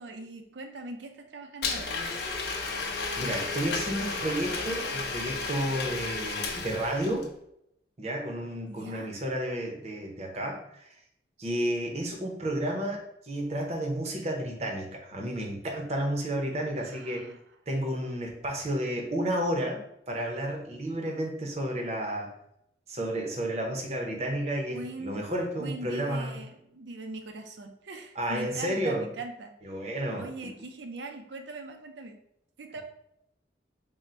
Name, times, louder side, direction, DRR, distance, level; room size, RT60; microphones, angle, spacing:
voice 1, 0.0-2.0 8.7-9.1 16.8-17.4 24.7-25.2 25.6-29.6 30.2-32.2 32.6-32.8, right 2 dB, 80° right, 5 dB, 0.5 m, -41 dB
Domestic sounds home sounds, 1.6-7.3, left 4 dB, 60° left, 0.5 m, -33 dB
voice 2, 3.2-7.3 8.0-10.8 11.4-17.3 17.7-22.3 22.9-26.3 28.2-29.0 29.7-30.5, right 1 dB, 35° right, 1 dB, 0.6 m, -31 dB
3.7 x 2.1 x 4.2 m, 0.76 s
head